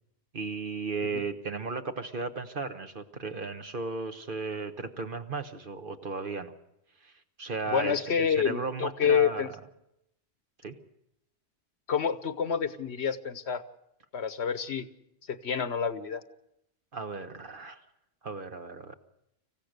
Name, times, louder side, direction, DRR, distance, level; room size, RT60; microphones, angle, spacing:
voice 1, 0.3-6.5 7.0-7.1 7.4-9.5 10.6-10.8 16.9-17.8 18.2-18.9, right 4 dB, 50° right, 7 dB, 1.3 m, -35 dB
voice 2, 7.7-9.5 11.9-13.6 14.1-14.9 15.3-16.2, left 7 dB, 70° left, 12 dB, 1.3 m, -28 dB
25.5 x 15.5 x 6.6 m, 0.83 s
omnidirectional pair, 1.1 m